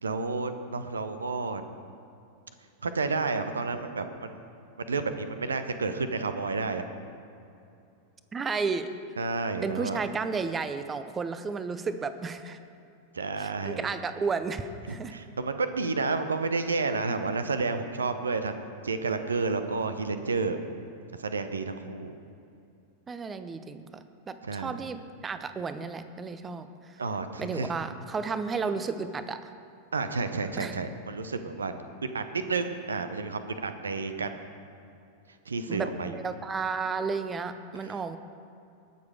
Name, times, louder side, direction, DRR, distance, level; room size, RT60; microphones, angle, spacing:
voice 1, 0.0-1.6 2.8-4.3 4.9-6.8 9.2-10.0 13.1-13.9 15.1-18.5 18.8-20.6 21.2-22.2 24.4-24.7 27.0-27.7 29.9-31.7 32.0-34.3 35.5-36.1, right 4 dB, 75° right, 9 dB, 0.8 m, -30 dB
voice 2, 8.3-8.9 9.6-12.6 13.4-15.1 23.1-27.0 27.4-29.5 30.6-30.8 35.7-38.2, right 4 dB, 20° right, 11 dB, 0.7 m, -33 dB
20.0 x 6.9 x 4.9 m, 2.6 s
figure-of-eight pair, 90°, 0 cm